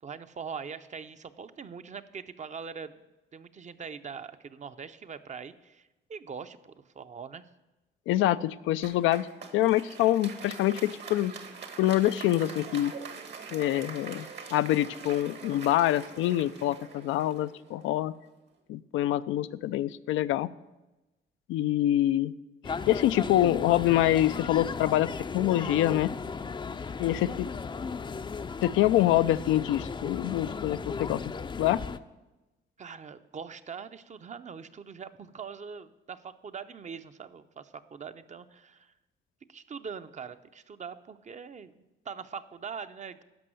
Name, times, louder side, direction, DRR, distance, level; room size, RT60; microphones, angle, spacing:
voice 1, 0.0-3.0 3.3-7.4 26.7-27.0 32.8-38.9 39.5-43.2, right 6 dB, 35° right, 11 dB, 0.6 m, -42 dB
voice 2, 8.1-9.3 9.5-11.3 11.8-12.9 13.5-18.1 18.7-20.5 21.5-22.3 22.6-26.1 27.0-27.5 28.6-31.2 31.6-31.8, left 14 dB, 85° left, 14 dB, 0.4 m, -25 dB
Applause, 8.8-18.2, right 5 dB, 60° right, 1.5 m, -44 dB
sound 1, 22.6-32.0, left 5 dB, 25° left, 0.4 m, -36 dB
12.5 x 5.4 x 7.7 m, 1.0 s
cardioid pair, 90°, 20 cm